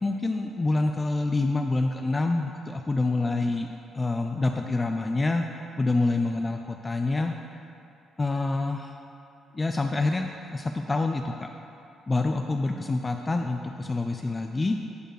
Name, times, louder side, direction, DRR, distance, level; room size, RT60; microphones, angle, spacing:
voice 1, 0.0-3.7 3.9-5.4 5.8-7.3 8.2-8.9 9.5-11.5 12.1-14.8, left 2 dB, 25° left, 4 dB, 0.4 m, -27 dB
12.0 x 4.5 x 4.6 m, 2.6 s
figure-of-eight pair, 40°, 0 cm